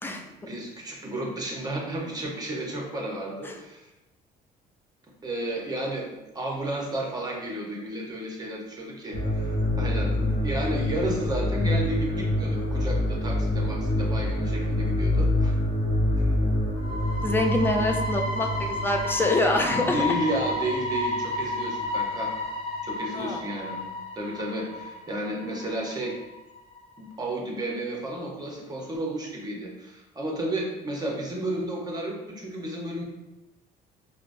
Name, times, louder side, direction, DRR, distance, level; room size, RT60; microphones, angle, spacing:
voice 1, 0.4-3.9 5.2-15.5 16.2-16.3 19.7-22.3 22.8-23.8 24.1-26.2 27.0-33.0, right 1 dB, 25° right, -1 dB, 0.8 m, -32 dB
sound 1, 9.1-25.9 26.2-26.3 26.8-26.9, left 1 dB, 35° left, 0.9 m, -27 dB
voice 2, 17.2-20.0 23.1-23.4, left 2 dB, 15° left, 3 dB, 0.4 m, -25 dB
4.9 x 2.0 x 2.5 m, 0.99 s
cardioid pair, 110°, 17 cm